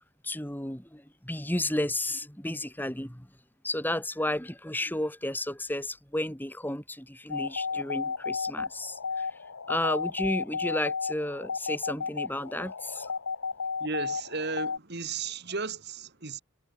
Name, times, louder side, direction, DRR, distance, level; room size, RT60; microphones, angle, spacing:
voice 1, 0.2-3.3 3.6-9.3 9.7-13.1, left 1 dB, 10° left, 2.8 m, -32 dB
sound 1, 7.3-14.8, left 5 dB, 65° left, 1.0 m, -33 dB
voice 2, 13.8-16.4, right 4 dB, 50° right, 2.1 m, -34 dB
head